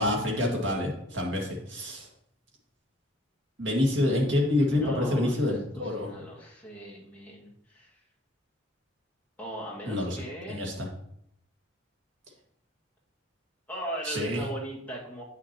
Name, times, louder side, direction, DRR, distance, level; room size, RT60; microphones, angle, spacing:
voice 1, 0.0-2.1 3.6-6.1 9.9-10.9 14.0-14.4, left 1 dB, 65° right, 0 dB, 1.9 m, -27 dB
voice 2, 4.7-5.5 5.7-8.0 9.4-10.6 13.7-15.2, right 1 dB, 10° left, -5 dB, 1.9 m, -38 dB
8.9 x 6.0 x 3.0 m, 0.72 s
head